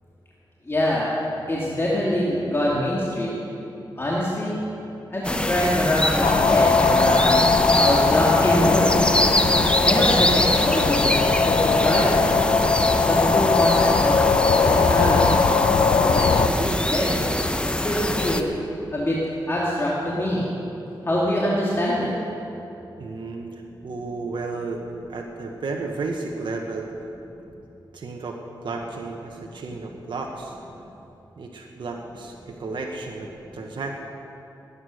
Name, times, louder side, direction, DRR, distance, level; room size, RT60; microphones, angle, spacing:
voice 1, 0.7-1.1 1.5-3.4 4.0-4.6 5.1-7.4 7.7-8.9 9.8-12.4 13.0-14.2 14.5-15.3 16.1-17.4 17.8-18.5 18.9-19.2 19.5-20.5 21.0-22.1, left 1 dB, 30° left, -6 dB, 2.5 m, -24 dB
sound 1, 5.2-18.4, left 1 dB, 10° left, 0.9 m, -24 dB
sound 2, 6.2-16.5, left 4 dB, 75° left, 0.8 m, -20 dB
voice 2, 23.0-24.8 25.1-26.9 27.9-30.6 31.4-33.9, right 3 dB, 70° right, 1 dB, 1.3 m, -33 dB
20.0 x 9.5 x 6.5 m, 2.9 s
cardioid pair, 75°, 8 cm